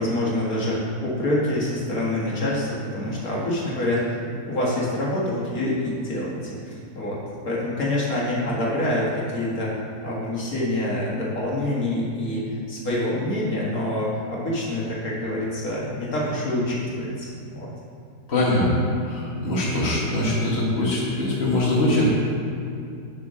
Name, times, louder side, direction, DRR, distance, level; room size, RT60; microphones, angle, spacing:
voice 1, 0.0-4.2 4.4-7.2 7.5-9.7 10.0-17.7, left 1 dB, 60° left, -6 dB, 2.2 m, -26 dB
voice 2, 18.3-22.1, left 1 dB, 40° left, -6 dB, 1.8 m, -22 dB
8.3 x 4.4 x 6.3 m, 2.5 s
omnidirectional pair, 1.8 m